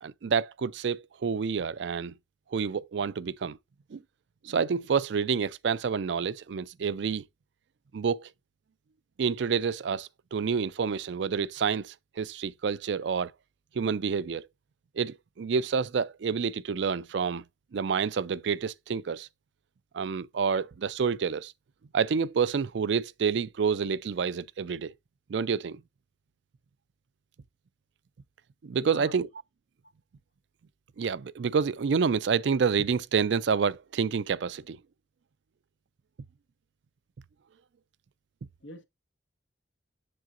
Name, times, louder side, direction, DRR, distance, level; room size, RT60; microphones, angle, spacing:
voice 1, 0.0-2.1 2.5-3.6 3.9-4.0 4.4-7.2 7.9-8.3 9.2-13.3 13.7-14.4 15.0-17.4 17.7-19.3 19.9-21.5 21.9-24.9 25.3-25.8 28.6-29.3 31.0-34.8, right 6 dB, 70° right, 0.4 m, -28 dB
voice 2, 28.8-29.2 38.6-38.8, left 1 dB, 90° left, 1.3 m, -44 dB
7.6 x 6.6 x 2.5 m
head